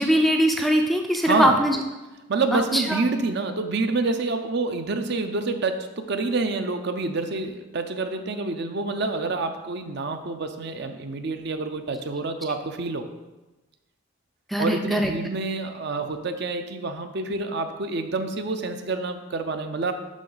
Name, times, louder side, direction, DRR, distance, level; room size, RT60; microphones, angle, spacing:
voice 1, 0.0-1.8 2.5-3.0 14.5-15.1, equal, ahead, 2 dB, 0.4 m, -21 dB
voice 2, 1.2-1.6 2.3-13.1 14.6-19.9, right 3 dB, 50° right, 7 dB, 0.6 m, -27 dB
11.0 x 3.8 x 4.0 m, 1.1 s
head